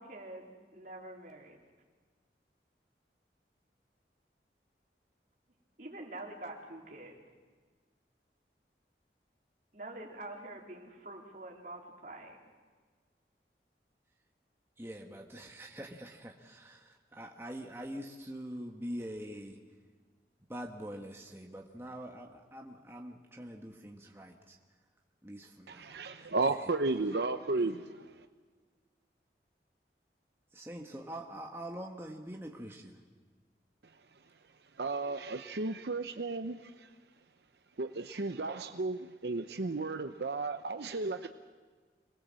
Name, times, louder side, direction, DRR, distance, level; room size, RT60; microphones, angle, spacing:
voice 1, 0.0-1.6 5.8-7.2 9.7-12.5, right 2 dB, 50° right, 0 dB, 3.6 m, -46 dB
voice 2, 14.8-19.6 20.5-24.6 25.2-26.3 30.5-33.0, equal, 15° right, 1 dB, 1.5 m, -44 dB
voice 3, 25.7-28.3 34.7-36.9 37.8-41.3, right 3 dB, 75° right, 8 dB, 0.8 m, -34 dB
26.5 x 20.0 x 7.6 m, 1.5 s
head